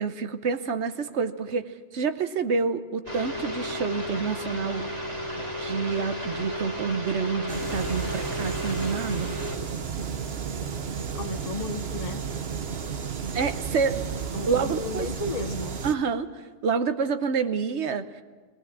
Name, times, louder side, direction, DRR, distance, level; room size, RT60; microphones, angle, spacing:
voice 1, 0.0-4.9 5.4-9.3 13.3-15.1 15.8-18.2, right 5 dB, 90° right, 10 dB, 1.2 m, -28 dB
sound 1, 3.1-9.6, equal, 35° right, 3.2 m, -33 dB
sound 2, 7.5-16.0, right 6 dB, 65° right, 1.2 m, -33 dB
voice 2, 11.2-12.3 14.3-15.8, left 3 dB, 40° left, 6 dB, 0.8 m, -34 dB
19.5 x 19.5 x 7.4 m, 1.4 s
omnidirectional pair, 1.1 m